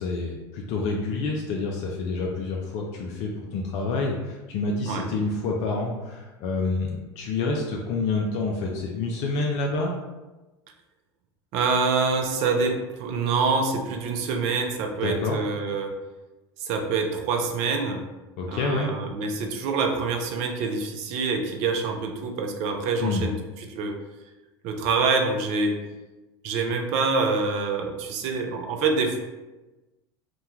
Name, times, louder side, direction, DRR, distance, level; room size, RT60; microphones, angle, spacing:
voice 1, 0.0-9.9 15.0-15.4 18.4-18.9 23.0-23.3, left 3 dB, 50° left, 0 dB, 0.4 m, -28 dB
voice 2, 11.5-16.0 16.6-18.0 18.5-23.4 23.7-23.9 24.6-25.8 26.4-29.2, right 4 dB, 50° right, 4 dB, 0.4 m, -26 dB
2.2 x 2.2 x 2.9 m, 1.1 s
hypercardioid pair, 75°, 14 cm